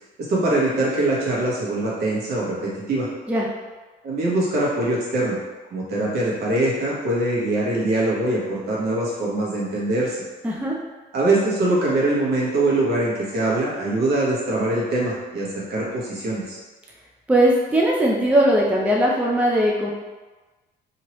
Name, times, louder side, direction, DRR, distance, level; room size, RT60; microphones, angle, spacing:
voice 1, 0.2-3.1 4.0-5.4 5.7-10.2 11.1-16.6, right 2 dB, 60° right, -6 dB, 1.2 m, -23 dB
voice 2, 10.4-10.8 17.3-19.9, right 1 dB, 5° right, -2 dB, 0.4 m, -19 dB
3.0 x 2.8 x 3.0 m, 1.2 s
cardioid pair, 105°, 19 cm